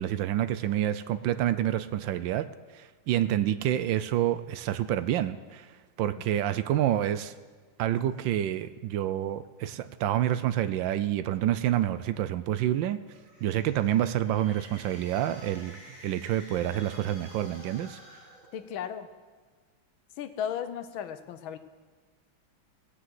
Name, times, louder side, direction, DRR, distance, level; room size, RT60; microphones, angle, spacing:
voice 1, 0.0-2.5 2.7-5.7 6.0-7.3 7.8-13.0 13.4-18.0, right 12 dB, 75° right, 13 dB, 1.3 m, -28 dB
sound 1, 13.0-19.1, equal, 45° right, 2.8 m, -50 dB
voice 2, 18.5-19.1 20.2-21.6, left 8 dB, 90° left, 10 dB, 1.6 m, -35 dB
18.5 x 6.2 x 7.7 m, 1.5 s
omnidirectional pair, 2.1 m